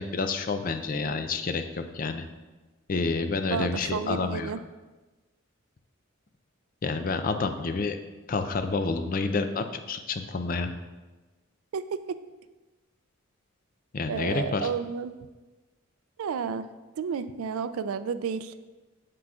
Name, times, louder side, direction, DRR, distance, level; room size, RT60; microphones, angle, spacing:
voice 1, 0.0-2.2 2.9-4.5 6.8-8.0 8.3-10.7 13.9-14.7, left 4 dB, 40° left, 8 dB, 0.4 m, -29 dB
voice 2, 3.5-4.6 11.7-12.2 14.1-15.1 16.2-16.7 17.0-18.5, right 6 dB, 85° right, 12 dB, 0.4 m, -31 dB
7.6 x 7.5 x 2.4 m, 1.2 s
head